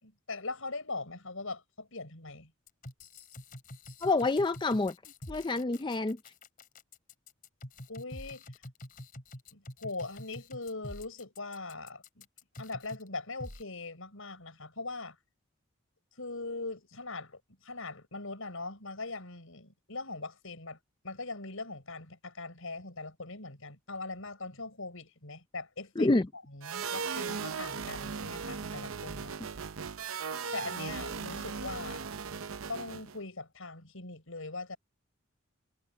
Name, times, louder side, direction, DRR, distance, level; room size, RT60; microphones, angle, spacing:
voice 1, 0.0-2.5 7.9-8.4 9.5-12.3 12.6-15.2 16.2-20.8 21.0-29.4 30.5-32.1 32.7-34.8, left 3 dB, 75° left, 5.2 m, -41 dB
sound 1, 2.7-13.1 13.4-13.6, left 1 dB, 40° left, 4.1 m, -47 dB
voice 2, 4.0-4.9 5.3-6.2 26.0-26.3, left 2 dB, 20° left, 0.5 m, -27 dB
sound 2, 26.6-33.2, right 6 dB, 75° right, 0.7 m, -38 dB
head